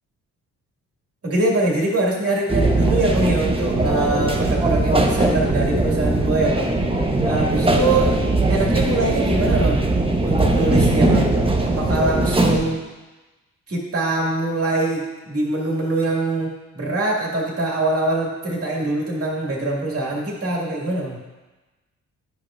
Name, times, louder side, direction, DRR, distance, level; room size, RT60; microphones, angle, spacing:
voice 1, 1.2-6.8 7.2-8.1 8.5-9.9 10.2-11.3 11.8-12.8 13.7-21.2, right 2 dB, 40° right, -3 dB, 2.2 m, -23 dB
sound 1, 2.5-12.6, right 2 dB, 15° right, 0.9 m, -20 dB
9.6 x 5.2 x 2.5 m, 1.2 s
supercardioid pair, 55°, 36 cm